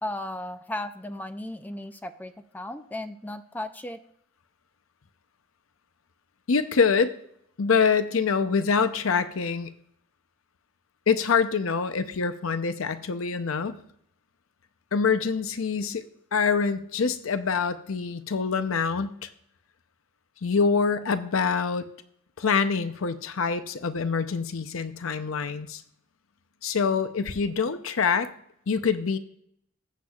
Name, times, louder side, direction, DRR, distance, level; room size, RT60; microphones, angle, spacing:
voice 1, 0.0-4.0, left 1 dB, 10° left, 9 dB, 0.4 m, -35 dB
voice 2, 6.5-7.2 7.6-9.7 11.1-13.8 14.9-16.1 16.3-19.3 20.4-21.8 22.4-25.8 26.6-28.3 28.7-29.2, left 5 dB, 80° left, 11 dB, 0.6 m, -25 dB
14.5 x 8.2 x 2.4 m, 0.69 s
head